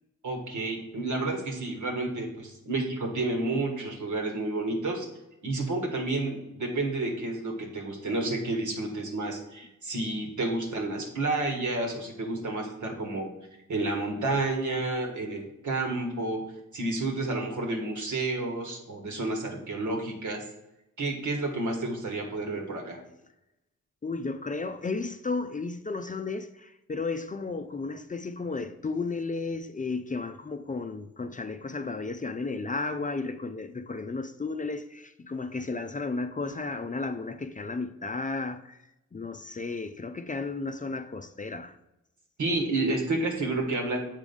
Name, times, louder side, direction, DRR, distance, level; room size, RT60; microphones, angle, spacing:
voice 1, 0.2-5.1 5.4-13.3 13.7-16.4 16.7-20.4 21.0-23.0 42.4-44.0, right 2 dB, 70° right, 1.7 m, -30 dB
voice 2, 24.0-38.8 39.1-41.7, left 3 dB, 25° left, 0.5 m, -33 dB
7.3 x 3.5 x 5.3 m
supercardioid pair, 45°, 31 cm